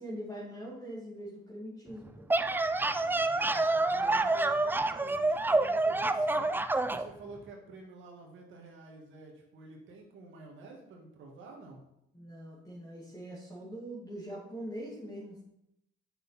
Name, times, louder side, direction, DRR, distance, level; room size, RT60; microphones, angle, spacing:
voice 1, 0.0-2.2 12.1-15.4, right 1 dB, 15° left, -6 dB, 2.4 m, -42 dB
sound 1, 2.1-7.1, right 2 dB, 10° right, 0.4 m, -28 dB
voice 2, 2.9-6.5 6.9-11.8, right 3 dB, 75° right, 0 dB, 1.8 m, -50 dB
7.9 x 6.3 x 4.2 m, 0.82 s
cardioid pair, 90°, 20 cm